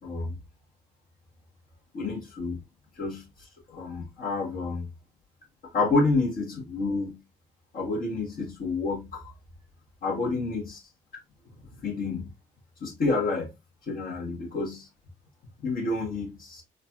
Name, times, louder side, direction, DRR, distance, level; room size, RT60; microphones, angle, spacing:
voice 1, 0.0-0.4 1.9-2.6 3.0-3.2 3.7-4.8 5.7-7.2 7.7-9.3 10.0-10.7 11.8-12.2 12.8-13.5 13.9-14.9 15.6-16.6, left 3 dB, 60° left, 1.4 m, -29 dB
3.9 x 2.3 x 2.4 m
hypercardioid pair, 45°, 17 cm